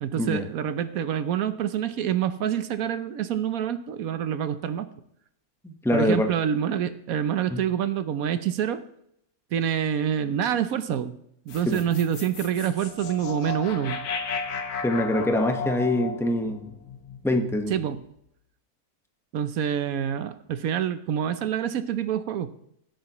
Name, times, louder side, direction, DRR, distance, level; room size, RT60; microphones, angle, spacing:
voice 1, 0.0-4.9 5.9-8.8 9.5-11.2 11.5-14.0 17.7-18.0 19.3-22.5, right 9 dB, 75° right, 12 dB, 1.1 m, -27 dB
voice 2, 5.6-6.3 7.5-7.6 11.7-11.8 14.8-16.7 17.2-17.7, left 1 dB, ahead, 4 dB, 0.9 m, -24 dB
sound 1, 11.5-17.8, left 5 dB, 90° left, 1.5 m, -34 dB
17.0 x 8.6 x 3.0 m, 0.73 s
omnidirectional pair, 1.6 m